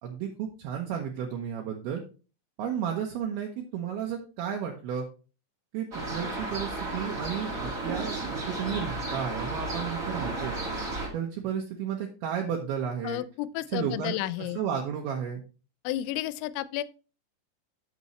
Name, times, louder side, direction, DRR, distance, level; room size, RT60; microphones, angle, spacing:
voice 1, 0.0-2.0 2.6-5.1 5.7-10.5 11.1-13.2 13.7-15.4, right 8 dB, 70° right, 2.7 m, -33 dB
sound 1, 5.9-11.1, right 2 dB, 40° right, 1.2 m, -33 dB
voice 2, 13.0-14.6 15.8-16.8, left 14 dB, 85° left, 2.9 m, -32 dB
9.6 x 7.0 x 3.1 m
omnidirectional pair, 5.2 m